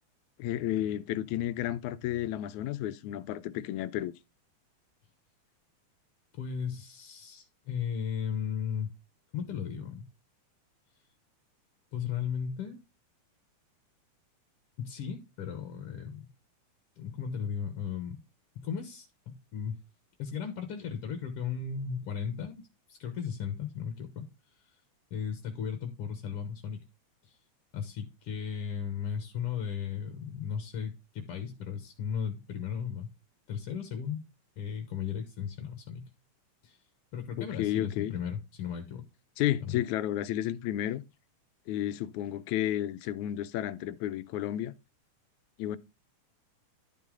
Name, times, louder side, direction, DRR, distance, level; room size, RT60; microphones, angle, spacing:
voice 1, 0.4-4.1 37.4-38.1 39.4-41.0 41.7-44.7 45.6-45.8, left 12 dB, 80° left, 1.9 m, -32 dB
voice 2, 6.3-8.9 9.3-10.1 11.9-12.8 14.8-16.3 17.0-18.2 18.6-19.8 20.2-22.6 22.9-24.3 25.1-26.8 27.2-27.4 27.7-33.1 33.5-34.2 34.6-36.1 36.6-36.8 37.1-39.1 39.6-39.8, left 7 dB, 60° left, 1.8 m, -36 dB
11.5 x 5.4 x 3.7 m
omnidirectional pair, 3.5 m